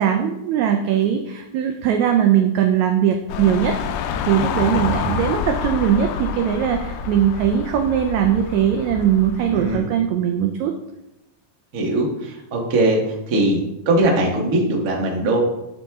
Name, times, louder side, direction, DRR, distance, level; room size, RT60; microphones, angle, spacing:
voice 1, 0.0-3.7 4.3-10.7, right 9 dB, 85° right, 4 dB, 1.6 m, -20 dB
sound 1, 3.3-9.8, left 7 dB, 80° left, 1.9 m, -27 dB
voice 2, 9.5-9.9 11.7-13.6 13.8-15.4, right 1 dB, 50° right, -1 dB, 1.0 m, -20 dB
11.5 x 4.1 x 3.5 m, 0.92 s
omnidirectional pair, 3.8 m